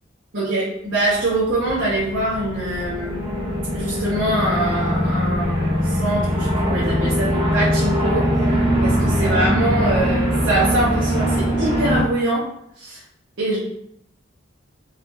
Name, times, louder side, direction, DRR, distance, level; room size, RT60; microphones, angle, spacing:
voice 1, 0.3-3.2 3.7-8.3 8.8-12.5 12.8-13.0 13.4-13.6, right 1 dB, 70° right, -8 dB, 1.3 m, -23 dB
sound 1, 1.0-12.0, equal, 25° right, 1.1 m, -21 dB
4.0 x 3.8 x 2.7 m, 0.73 s
head